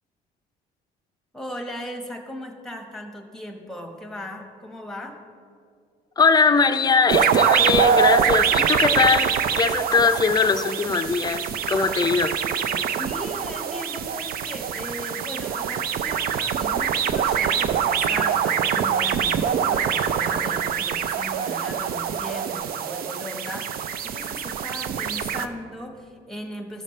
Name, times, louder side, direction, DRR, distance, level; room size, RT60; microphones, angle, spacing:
voice 1, 1.3-5.2 12.9-26.8, left 1 dB, 5° left, 3 dB, 1.2 m, -37 dB
voice 2, 6.2-12.4, left 5 dB, 25° left, 9 dB, 0.5 m, -21 dB
sound 1, 7.1-25.5, right 8 dB, 60° right, 0.5 m, -24 dB
15.0 x 6.5 x 3.2 m, 2.2 s
cardioid pair, 110°, 17 cm